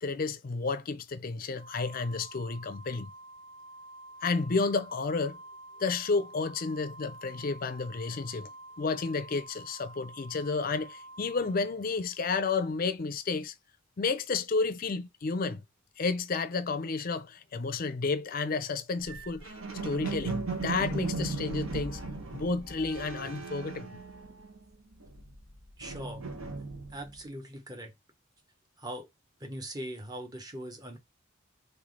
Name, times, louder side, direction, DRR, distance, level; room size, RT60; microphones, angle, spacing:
voice 1, 0.0-3.1 4.2-5.4 5.8-8.5 8.8-13.5 14.0-15.6 16.0-19.5 19.8-22.0 22.3-24.0, left 4 dB, 40° left, 0.4 m, -31 dB
Organ, 1.6-12.3, right 1 dB, 70° right, 1.6 m, -49 dB
sound 1, 19.0-24.6 24.9-27.2, right 3 dB, 85° right, 1.5 m, -37 dB
voice 2, 25.8-26.2 26.9-27.9 28.8-29.1 29.4-31.0, right 1 dB, 20° right, 0.8 m, -40 dB
3.5 x 3.3 x 3.8 m
head